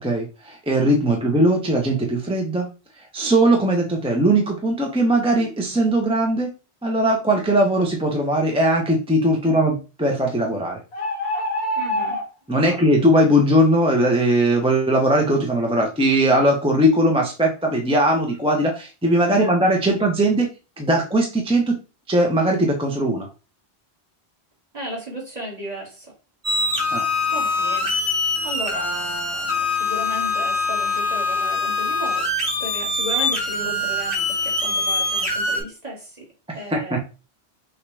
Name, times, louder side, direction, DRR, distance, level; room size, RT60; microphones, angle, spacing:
voice 1, 0.0-2.7 3.0-6.5 6.8-10.8 12.5-20.5 20.8-21.8 22.1-23.3 26.9-27.0 36.7-37.0, right 1 dB, 5° right, 0 dB, 0.6 m, -19 dB
sound 1, 10.9-12.3, left 1 dB, 75° left, 1.2 m, -25 dB
voice 2, 11.8-12.2 12.5-12.8 19.3-19.6 19.8-19.9 24.7-26.1 27.3-27.9 28.4-36.2 36.5-37.0, right 1 dB, 40° right, -3 dB, 2.0 m, -34 dB
sound 2, 26.4-35.6, left 2 dB, 55° right, 1.7 m, -23 dB
5.9 x 2.4 x 3.2 m, 0.32 s
omnidirectional pair, 1.1 m